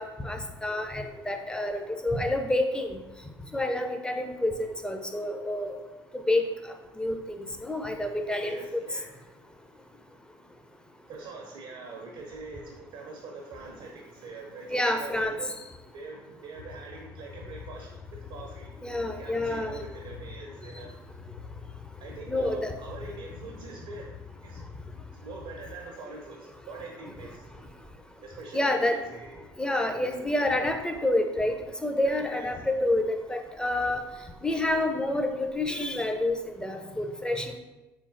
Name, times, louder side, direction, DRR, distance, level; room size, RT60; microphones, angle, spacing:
voice 1, 0.0-3.0 3.5-5.7 6.3-6.4 7.0-8.6 14.7-15.4 18.8-19.8 22.3-22.7 28.5-29.0 29.6-31.5 31.8-34.0 34.4-37.6, left 1 dB, 5° left, 6 dB, 0.4 m, -28 dB
voice 2, 8.4-9.1 11.1-15.5 15.9-17.9 18.3-18.7 19.2-20.9 22.0-24.6 25.1-27.5 28.2-29.4 29.7-29.9 32.0-32.5, right 3 dB, 65° right, 0 dB, 0.5 m, -43 dB
sound 1, 16.5-25.6, left 6 dB, 55° left, 0.6 m, -45 dB
3.6 x 3.1 x 2.5 m, 1.1 s
figure-of-eight pair, 55°, 12 cm